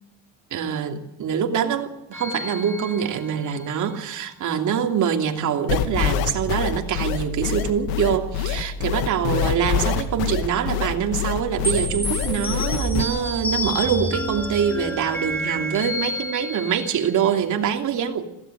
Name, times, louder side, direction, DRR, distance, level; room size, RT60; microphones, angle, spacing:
voice 1, 0.5-18.3, right 8 dB, 55° right, 2.9 m, -24 dB
sound 1, 2.1-3.7 11.6-17.4, equal, 5° left, 5.8 m, -29 dB
sound 2, 5.7-13.0, left 9 dB, 85° left, 2.2 m, -25 dB
21.5 x 16.5 x 8.1 m
cardioid pair, 110°, 35 cm